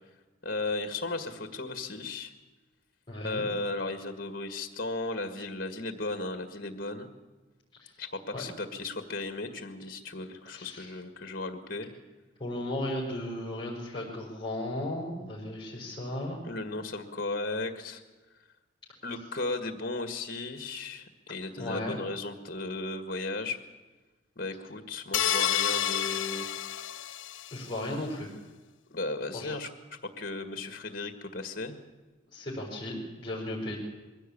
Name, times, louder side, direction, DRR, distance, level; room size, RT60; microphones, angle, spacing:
voice 1, 0.4-2.3 3.2-7.1 8.0-11.9 16.4-18.0 19.0-23.6 24.4-26.5 28.9-29.7 30.2-31.8, left 2 dB, 50° left, 8 dB, 1.8 m, -35 dB
voice 2, 3.1-3.5 7.8-7.9 8.3-8.4 10.5-10.9 12.4-16.4 21.6-22.0 27.5-28.3 29.3-29.5 32.3-33.8, left 1 dB, 25° left, -4 dB, 5.1 m, -35 dB
sound 1, 25.1-27.6, left 10 dB, 85° left, 1.0 m, -29 dB
22.0 x 16.5 x 8.7 m, 1.2 s
head